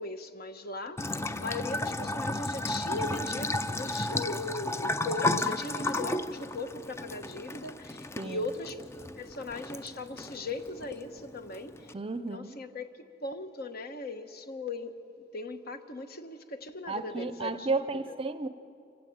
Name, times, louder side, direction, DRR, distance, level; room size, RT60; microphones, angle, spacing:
voice 1, 0.0-8.8 9.2-11.9 12.3-15.0 15.3-18.2, left 2 dB, 55° left, 8 dB, 1.2 m, -38 dB
Bathtub (filling or washing) / Trickle dribble, 1.0-11.9, left 2 dB, 15° left, 0.4 m, -34 dB
voice 2, 11.9-12.6 16.9-18.5, right 3 dB, 30° right, 12 dB, 0.6 m, -33 dB
26.5 x 16.0 x 8.8 m, 2.6 s
head